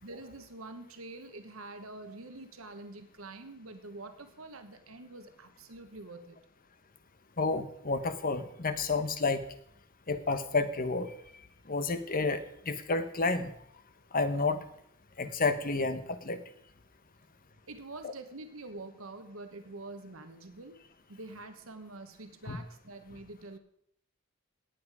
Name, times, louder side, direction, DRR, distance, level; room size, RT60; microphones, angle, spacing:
voice 1, 0.0-6.4 17.7-20.8 21.1-23.6, right 2 dB, 80° right, 8 dB, 1.3 m, -46 dB
voice 2, 7.4-9.4 10.1-11.1 11.7-13.5 14.1-14.6 15.2-16.4 22.5-22.6, left 3 dB, 45° left, 10 dB, 1.0 m, -30 dB
18.0 x 7.7 x 4.9 m, 0.72 s
head